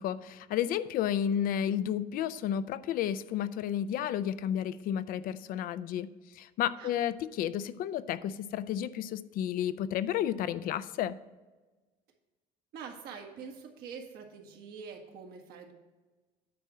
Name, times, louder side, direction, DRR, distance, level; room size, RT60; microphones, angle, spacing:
voice 1, 0.0-6.1 6.4-11.2, left 10 dB, 60° left, 15 dB, 0.4 m, -32 dB
voice 2, 12.7-15.7, right 6 dB, 70° right, 3 dB, 1.6 m, -45 dB
9.3 x 4.3 x 6.2 m, 1.2 s
cardioid pair, 120°, 16 cm